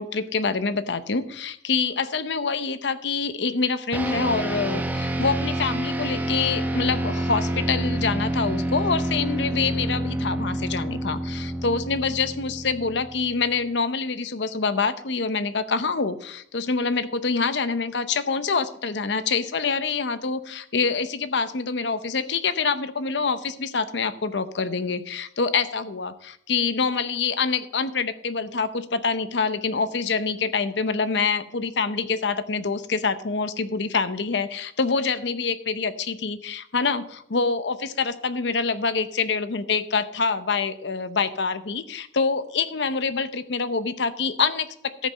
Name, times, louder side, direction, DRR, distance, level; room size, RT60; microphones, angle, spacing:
voice 1, 0.0-45.1, left 4 dB, 70° left, 12 dB, 0.7 m, -26 dB
sound 1, 3.9-13.6, right 1 dB, 10° right, 0.7 m, -28 dB
14.0 x 5.2 x 6.4 m, 0.69 s
head